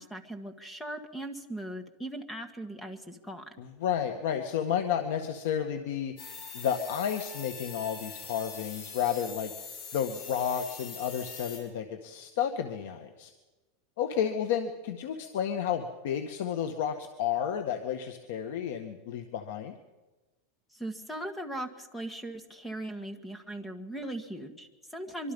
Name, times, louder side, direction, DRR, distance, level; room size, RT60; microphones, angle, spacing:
voice 1, 0.0-3.4 20.7-25.3, right 1 dB, 5° left, 8 dB, 1.7 m, -39 dB
voice 2, 3.6-6.1 6.5-9.5 9.9-13.3 14.0-19.7, left 8 dB, 70° left, 7 dB, 1.8 m, -31 dB
sound 1, 6.2-11.6, left 5 dB, 45° left, 7.9 m, -43 dB
24.5 x 24.5 x 5.5 m, 1.1 s
supercardioid pair, 170°, 0 cm